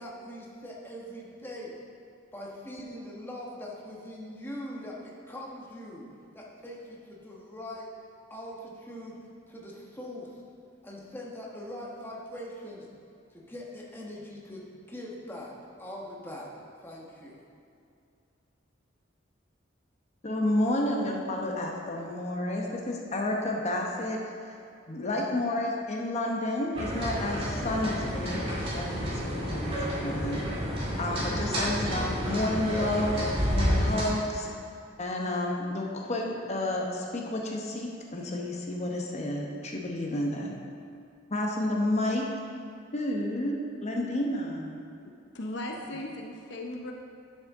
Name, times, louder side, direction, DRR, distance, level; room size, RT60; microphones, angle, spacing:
voice 1, 0.0-1.7 2.3-6.1 6.3-7.9 8.3-9.2 9.5-10.4 10.8-12.9 13.3-15.5 15.8-16.5 16.8-17.4, left 1 dB, 10° left, -4 dB, 1.2 m, -42 dB
voice 2, 20.2-24.2 24.5-24.6 24.9-30.5 31.0-33.2 33.5-34.5 35.0-40.6 41.3-42.2 42.9-44.8, left 1 dB, 35° left, 0 dB, 0.9 m, -30 dB
sound 1, 26.7-34.0, equal, 30° right, 2.1 m, -30 dB
voice 3, 45.3-46.9, left 1 dB, 65° left, 1 dB, 0.7 m, -37 dB
11.5 x 6.4 x 3.6 m, 2.5 s
head